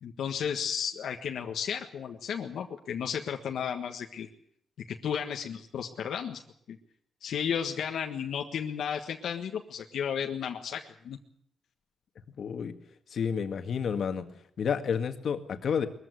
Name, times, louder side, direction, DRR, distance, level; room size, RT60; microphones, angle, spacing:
voice 1, 0.0-4.3 4.9-6.4 6.7-6.8 7.2-11.2, left 8 dB, 85° left, 3 dB, 1.6 m, -33 dB
voice 2, 12.4-12.7 13.1-14.3 14.6-15.9, left 7 dB, 65° left, 7 dB, 1.9 m, -30 dB
21.5 x 14.5 x 9.7 m, 0.67 s
wide cardioid pair, 130°, 0 cm